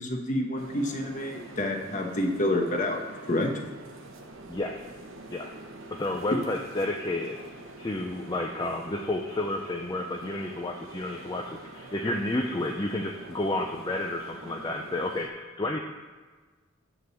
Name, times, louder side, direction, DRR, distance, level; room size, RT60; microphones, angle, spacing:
voice 1, 0.0-3.0 3.3-3.5, left 1 dB, 35° left, 2 dB, 1.1 m, -28 dB
sound 1, 0.6-15.3, right 2 dB, 75° right, 1.0 m, -46 dB
voice 2, 4.5-4.9 5.3-5.5 5.9-7.4 7.8-15.8, left 2 dB, 20° left, 1 dB, 0.5 m, -31 dB
9.5 x 3.9 x 7.0 m, 1.4 s
head